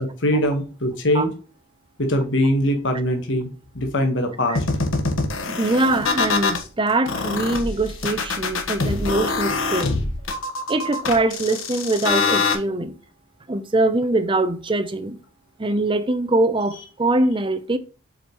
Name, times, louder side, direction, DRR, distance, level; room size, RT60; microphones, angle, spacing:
voice 1, 0.2-1.3 2.0-3.5 3.7-4.6, left 1 dB, 60° left, 1.3 m, -21 dB
sound 1, 4.6-6.6 7.1-12.6, left 3 dB, 80° left, 1.4 m, -24 dB
voice 2, 5.5-10.0 10.7-13.0 13.5-15.2 15.6-17.8, right 2 dB, 25° right, 0.6 m, -22 dB
7.6 x 4.9 x 3.0 m
head